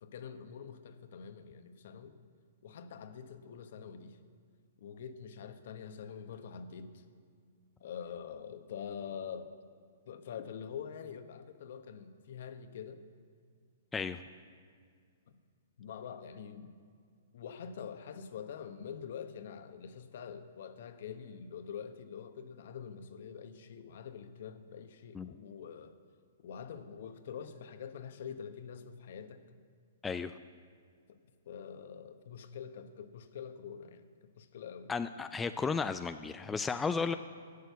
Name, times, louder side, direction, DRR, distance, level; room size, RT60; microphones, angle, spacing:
voice 1, 0.0-2.2 2.6-4.2 4.8-7.0 7.8-9.5 10.1-13.0 15.3-15.4 15.8-16.7 17.3-25.9 26.4-29.4 31.1-31.2 31.5-34.1 34.4-34.9, left 7 dB, 65° left, 9 dB, 0.9 m, -45 dB
voice 2, 34.9-37.2, left 5 dB, 10° left, 9 dB, 0.3 m, -34 dB
11.5 x 6.5 x 8.1 m, 2.1 s
hypercardioid pair, 140°, 0 cm